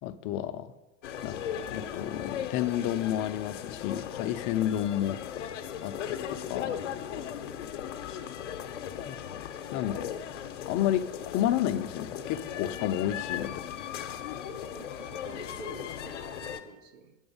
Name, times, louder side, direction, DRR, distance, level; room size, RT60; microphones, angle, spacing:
voice 1, 0.0-0.7 1.2-5.2 5.8-6.8 9.1-9.2 9.7-10.1 10.7-13.6, left 11 dB, 50° left, 11 dB, 0.7 m, -31 dB
sound 1, 1.0-16.6, left 9 dB, 80° left, 0.9 m, -37 dB
voice 2, 7.4-7.8 14.4-17.2, right 4 dB, 85° right, 9 dB, 1.1 m, -49 dB
9.5 x 8.0 x 5.5 m, 1.1 s
hypercardioid pair, 95°, 36 cm